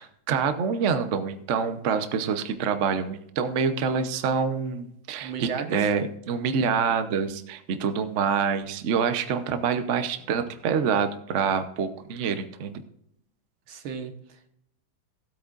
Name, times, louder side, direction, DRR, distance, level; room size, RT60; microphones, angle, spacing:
voice 1, 0.0-12.8, right 6 dB, 50° right, 9 dB, 0.9 m, -26 dB
voice 2, 5.2-5.9 13.7-14.5, right 6 dB, 85° right, 7 dB, 2.0 m, -35 dB
16.5 x 8.4 x 2.5 m, 0.73 s
omnidirectional pair, 2.2 m